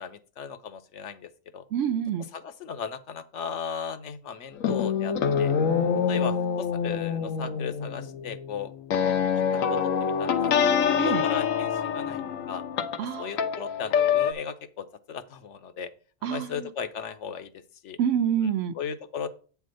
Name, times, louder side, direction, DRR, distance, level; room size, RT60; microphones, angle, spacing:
voice 1, 0.0-1.6 2.3-5.5 6.1-8.7 9.3-12.6 13.2-15.9 16.2-17.5 17.8-18.0 18.7-19.3, left 7 dB, 70° left, 1.0 m, -36 dB
voice 2, 1.7-2.3 11.0-11.2 13.0-13.3 16.2-16.7 18.0-18.8, right 9 dB, 75° right, 0.9 m, -27 dB
sound 1, 4.6-14.3, left 7 dB, 90° left, 1.1 m, -26 dB
8.3 x 3.4 x 6.2 m
omnidirectional pair, 1.3 m